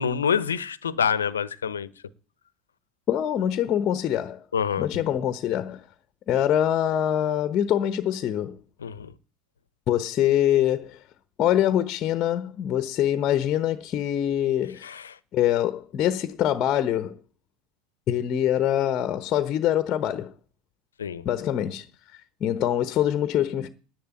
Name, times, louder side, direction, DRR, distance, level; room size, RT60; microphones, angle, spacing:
voice 1, 0.0-1.9 4.5-4.9 8.8-9.1 14.8-15.2 21.0-21.2, left 7 dB, 90° left, 0.9 m, -26 dB
voice 2, 3.1-4.4 4.8-5.9 6.3-8.6 9.9-11.0 11.4-14.9 15.3-17.2 18.1-20.3 21.2-21.9 22.4-23.7, left 11 dB, 45° left, 1.1 m, -24 dB
10.5 x 9.5 x 9.1 m
hypercardioid pair, 80°, 0 cm